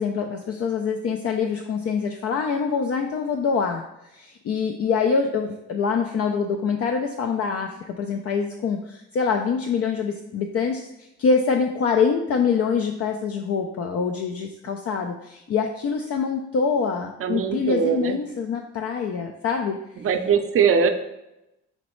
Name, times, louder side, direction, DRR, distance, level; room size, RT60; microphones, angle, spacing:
voice 1, 0.0-20.1, left 5 dB, 50° left, 4 dB, 0.4 m, -25 dB
voice 2, 17.2-18.2 20.0-20.9, right 6 dB, 45° right, 7 dB, 0.5 m, -21 dB
5.2 x 3.0 x 3.0 m, 0.91 s
cardioid pair, 90°, 30 cm